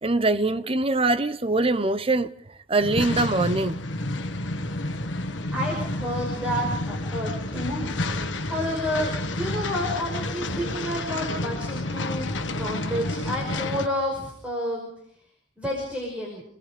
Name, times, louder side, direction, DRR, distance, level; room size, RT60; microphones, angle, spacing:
voice 1, 0.0-2.3 2.7-3.8, right 2 dB, 30° right, 0.9 m, -23 dB
sound 1, 2.8-13.9, left 2 dB, 85° left, 1.4 m, -30 dB
voice 2, 5.5-8.0 8.4-14.9 15.6-16.4, equal, 5° right, 5.7 m, -30 dB
30.0 x 19.5 x 5.2 m
head